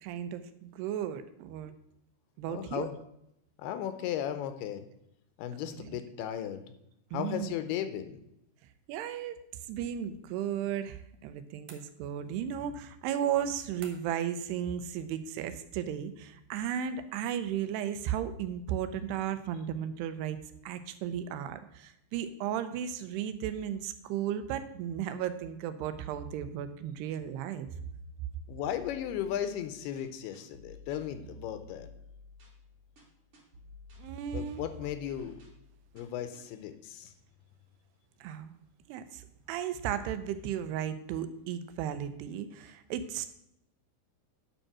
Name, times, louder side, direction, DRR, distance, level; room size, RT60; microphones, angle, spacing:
voice 1, 0.0-1.7 2.4-2.9 5.7-6.0 7.1-7.5 8.9-9.4 9.7-20.4 20.6-27.7 34.0-34.6 38.2-38.5 38.9-43.3, right 9 dB, 85° right, 11 dB, 2.7 m, -35 dB
voice 2, 2.5-2.9 3.6-4.8 5.4-6.6 7.1-8.2 28.5-31.9 34.3-35.4 35.9-37.1, left 10 dB, 80° left, 10 dB, 2.6 m, -36 dB
sound 1, 11.7-12.4 13.8-14.3, right 5 dB, 60° right, 2.2 m, -53 dB
sound 2, 28.3-36.4, left 1 dB, 40° right, 2.8 m, -53 dB
9.9 x 5.3 x 6.0 m, 0.79 s
omnidirectional pair, 4.8 m